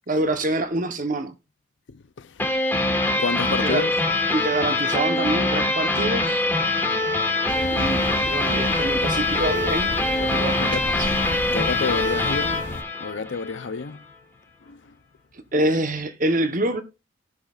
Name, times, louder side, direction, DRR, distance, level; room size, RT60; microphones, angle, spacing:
voice 1, 0.1-1.3 3.6-3.8 4.3-6.4 7.7-11.1 15.5-16.8, right 2 dB, 40° right, 1.1 m, -26 dB
voice 2, 1.9-2.3 3.2-4.0 10.6-10.9 11.5-12.7 13.0-14.0 14.7-14.8, left 4 dB, 70° left, 0.6 m, -29 dB
sound 1, 2.4-13.7, left 2 dB, 10° left, 2.0 m, -23 dB
sound 2, 7.5-12.8, left 2 dB, 45° left, 1.0 m, -34 dB
18.0 x 6.4 x 2.4 m
head